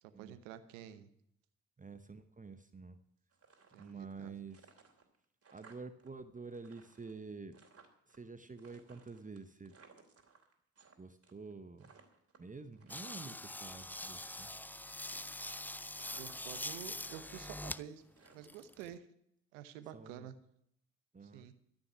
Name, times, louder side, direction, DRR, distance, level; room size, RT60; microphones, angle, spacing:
voice 1, 0.0-1.1 3.7-4.3 16.1-18.0 18.3-19.1 19.5-20.3 21.2-21.5, right 10 dB, 85° right, 12 dB, 1.0 m, -49 dB
voice 2, 1.8-3.0 3.8-4.7 5.5-7.6 8.1-9.7 11.0-11.9 12.4-14.5 19.9-20.3 21.1-21.5, right 4 dB, 20° right, 10 dB, 1.0 m, -49 dB
sound 1, 3.3-4.2 4.5-6.1 6.4-8.2 8.6-10.9 11.2-11.5 11.8-13.4 13.8-14.6 15.0-15.7 16.0-16.7 17.0-18.8, right 5 dB, 40° right, 3.0 m, -62 dB
sound 2, 12.9-17.8 18.3-18.9, left 1 dB, 5° left, 0.5 m, -44 dB
13.5 x 6.3 x 9.7 m, 0.72 s
hypercardioid pair, 45°, 36 cm